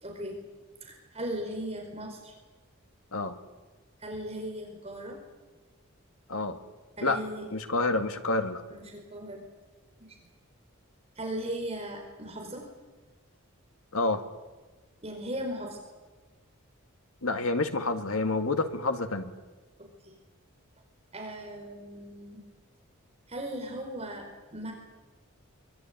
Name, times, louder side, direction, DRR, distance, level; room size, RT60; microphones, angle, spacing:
voice 1, 0.0-0.4 0.9-2.3 4.0-5.2 7.0-7.4 8.7-9.4 10.0-10.2 11.2-12.6 15.0-15.8 19.8-20.1 21.1-22.4 23.3-24.3 24.5-24.7, right 1 dB, 30° right, 2 dB, 4.6 m, -37 dB
voice 2, 7.5-8.6 13.9-14.2 17.2-19.3, left 3 dB, 85° left, 7 dB, 2.1 m, -28 dB
24.0 x 22.5 x 9.2 m, 1.3 s
head